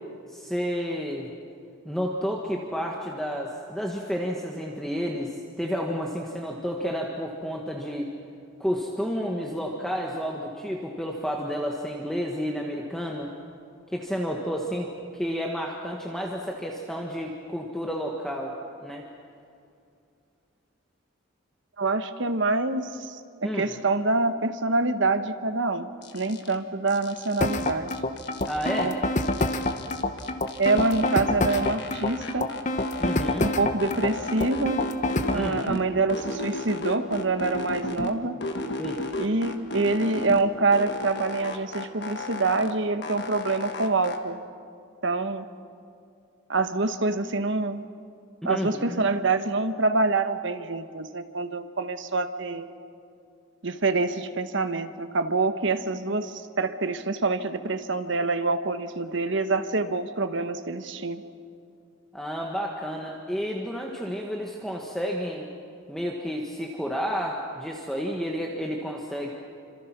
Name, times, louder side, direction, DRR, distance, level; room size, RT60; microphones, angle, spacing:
voice 1, 0.3-1.3 1.8-8.1 8.6-13.3 13.9-18.5 18.8-19.0 23.4-23.7 28.5-28.9 33.0-33.4 35.3-35.6 38.8-39.0 48.4-49.0 62.1-65.5 65.9-69.3, equal, ahead, -1 dB, 1.5 m, -31 dB
voice 2, 21.8-25.9 26.1-27.9 28.8-28.9 29.3-29.5 30.6-32.5 33.4-34.8 35.3-38.4 39.2-44.4 45.0-45.4 46.5-47.8 48.4-52.7 53.6-61.2, right 3 dB, 60° right, 9 dB, 1.1 m, -26 dB
sound 1, 26.0-26.5 26.9-28.9 29.2-31.2 31.5-33.5 33.8-35.8 36.1-38.1 38.4-40.4 40.7-42.7 43.0-44.2, left 2 dB, 55° left, 1.5 m, -35 dB
sound 2, 27.4-35.4, left 1 dB, 35° left, 1.0 m, -26 dB
27.5 x 26.0 x 6.0 m, 2.4 s
head